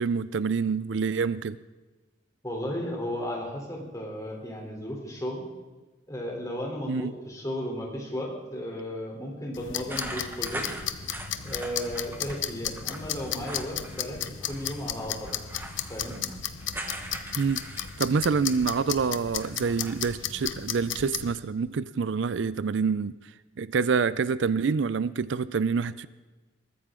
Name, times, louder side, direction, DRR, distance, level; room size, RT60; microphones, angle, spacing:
voice 1, 0.0-1.6 6.9-7.1 17.4-17.6 18.0-23.1 23.6-26.1, right 5 dB, 70° right, 17 dB, 0.4 m, -27 dB
voice 2, 2.4-5.4 6.1-10.7 11.4-14.2 14.5-15.4 15.9-16.2, equal, 20° left, -1 dB, 3.4 m, -34 dB
sound 1, 9.5-21.3, left 9 dB, 85° left, 0.9 m, -35 dB
sound 2, 9.9-12.4 12.7-14.1 14.4-18.9 19.2-19.9, right 1 dB, 10° right, 1.3 m, -41 dB
21.5 x 14.5 x 3.8 m, 1.2 s
head